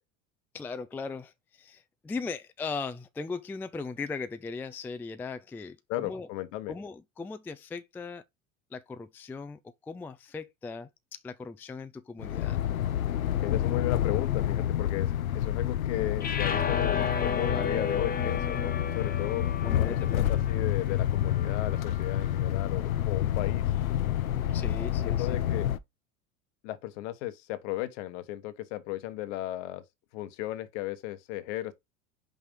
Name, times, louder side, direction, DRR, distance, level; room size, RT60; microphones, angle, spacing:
voice 1, 0.5-6.3 6.7-8.2 8.7-12.6 19.6-20.3 24.5-25.4, left 4 dB, 5° left, 0.3 m, -38 dB
voice 2, 5.9-6.7 13.4-19.5 19.8-23.6 25.0-25.7 26.6-29.8 30.1-31.7, left 15 dB, 60° left, 1.1 m, -35 dB
sound 1, 12.2-25.8, left 11 dB, 90° left, 0.6 m, -28 dB
sound 2, 16.2-22.5, left 5 dB, 20° left, 1.1 m, -34 dB
5.6 x 4.5 x 5.1 m
hypercardioid pair, 80°, 40 cm